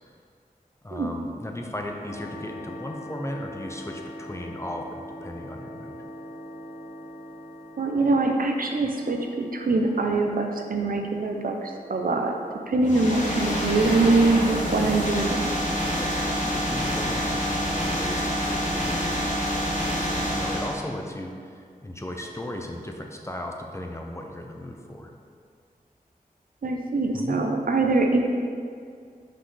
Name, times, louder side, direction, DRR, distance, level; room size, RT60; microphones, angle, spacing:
voice 1, 0.8-6.0 12.8-13.1 16.0-25.1 27.1-27.5, left 1 dB, 20° left, 1 dB, 0.6 m, -36 dB
sound 1, 2.0-12.9, equal, 80° left, 0.9 m, -43 dB
voice 2, 7.8-12.4 12.7-15.5 26.6-28.2, right 3 dB, 65° right, 3 dB, 0.6 m, -23 dB
sound 2, 12.8-20.8, equal, 55° left, 1.3 m, -27 dB
5.6 x 5.2 x 3.3 m, 2.2 s
wide cardioid pair, 70°, 15 cm